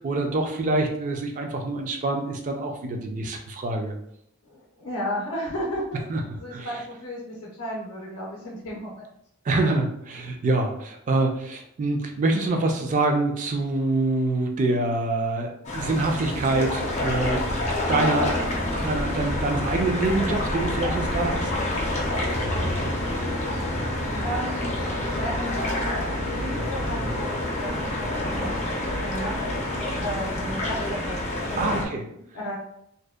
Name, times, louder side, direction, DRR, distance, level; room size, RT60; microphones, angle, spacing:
voice 1, 0.0-4.0 6.1-6.2 6.5-6.8 9.5-17.5 17.9-21.5 31.6-32.0, right 2 dB, 40° right, 3 dB, 0.3 m, -25 dB
voice 2, 4.4-6.0 6.4-9.1 24.2-24.6 25.1-28.5 29.0-29.7 30.0-31.2 31.5-31.9 32.3-32.6, equal, 85° left, -4 dB, 0.5 m, -34 dB
sound 1, 15.6-31.9, left 1 dB, 35° left, 0.4 m, -27 dB
2.6 x 2.0 x 2.2 m, 0.74 s
head